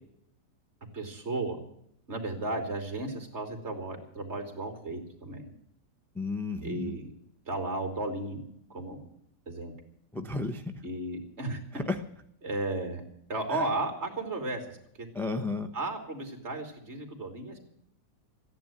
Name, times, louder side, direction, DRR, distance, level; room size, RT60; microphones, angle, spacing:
voice 1, 0.9-1.6 2.1-5.5 6.6-7.1 7.5-8.4 8.7-9.0 9.5-9.7 10.8-11.6 12.4-13.0 13.3-15.1 15.7-17.6, right 2 dB, 40° right, 5 dB, 3.4 m, -34 dB
voice 2, 6.1-7.0 10.1-10.6 11.7-12.0 13.5-13.6 15.1-15.7, left 3 dB, ahead, 5 dB, 0.5 m, -33 dB
14.5 x 10.5 x 9.0 m, 0.72 s
omnidirectional pair, 1.9 m